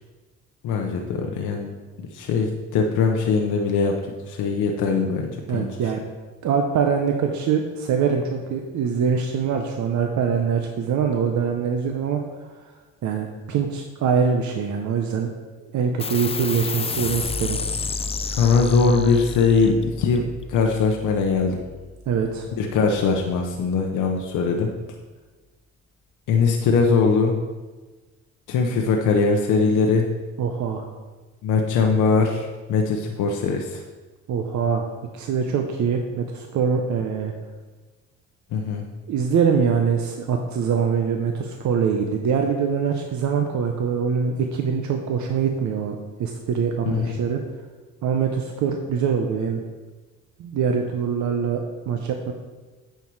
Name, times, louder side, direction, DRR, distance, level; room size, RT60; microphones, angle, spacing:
voice 1, 0.6-5.7 18.3-21.6 22.6-24.7 26.3-27.4 28.5-30.1 31.4-33.8 38.5-38.8 46.9-47.1, left 4 dB, 85° left, 2 dB, 0.8 m, -21 dB
voice 2, 5.5-6.0 6.4-12.6 13.0-15.3 15.7-17.6 22.1-22.5 30.4-30.9 34.3-34.9 35.1-37.3 39.1-47.4 48.0-49.6 50.4-52.3, right 6 dB, 70° right, 3 dB, 0.8 m, -23 dB
sound 1, 16.0-22.9, left 4 dB, 20° left, 0.4 m, -31 dB
9.1 x 4.6 x 4.7 m, 1.3 s
cardioid pair, 90°, 30 cm